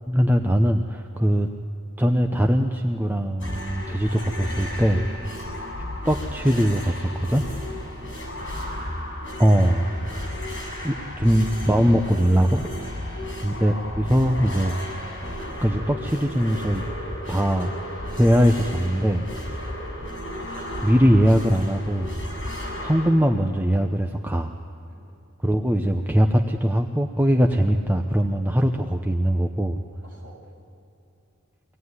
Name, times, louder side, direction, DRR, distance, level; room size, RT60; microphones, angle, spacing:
voice 1, 0.1-1.5 2.0-5.0 6.0-7.4 9.4-9.9 10.8-12.7 13.4-14.7 15.6-16.8 17.3-17.7 18.2-19.2 20.8-22.1 22.8-24.5 25.4-29.8, equal, 10° right, 3 dB, 0.8 m, -21 dB
sound 1, 3.4-23.1, left 1 dB, 55° left, 7.2 m, -33 dB
voice 2, 8.2-8.8 9.9-11.5 13.0-13.6 19.6-19.8 24.9-25.1 30.0-30.5, right 2 dB, 40° right, -3 dB, 6.9 m, -51 dB
25.0 x 17.5 x 9.7 m, 2.8 s
head